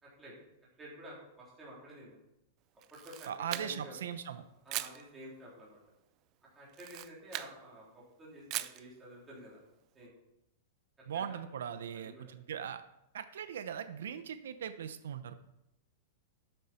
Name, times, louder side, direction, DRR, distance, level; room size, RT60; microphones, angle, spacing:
voice 1, 0.0-0.3 0.8-2.2 2.9-4.0 4.6-5.8 6.5-9.6 10.0-10.1 11.1-11.4 11.7-12.2, equal, 10° right, -6 dB, 3.5 m, -51 dB
Camera, 2.8-4.0 4.7-5.0 6.7-7.5 8.5-8.8, right 15 dB, 25° right, 0.4 m, -39 dB
voice 2, 3.3-4.4 11.1-12.8 13.1-15.4, right 8 dB, 85° right, 10 dB, 0.7 m, -39 dB
12.5 x 8.0 x 4.4 m, 0.87 s
supercardioid pair, 180°, 0 cm